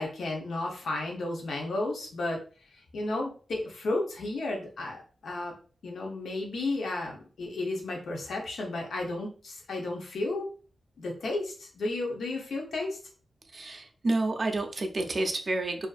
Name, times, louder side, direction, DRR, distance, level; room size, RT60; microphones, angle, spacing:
voice 1, 0.0-2.4 2.7-5.5 5.8-10.5 11.0-13.0, left 2 dB, 85° left, 0 dB, 0.6 m, -33 dB
voice 2, 13.5-15.9, right 2 dB, 35° right, 4 dB, 0.4 m, -29 dB
2.4 x 2.4 x 2.3 m, 0.38 s
wide cardioid pair, 160°, 0 cm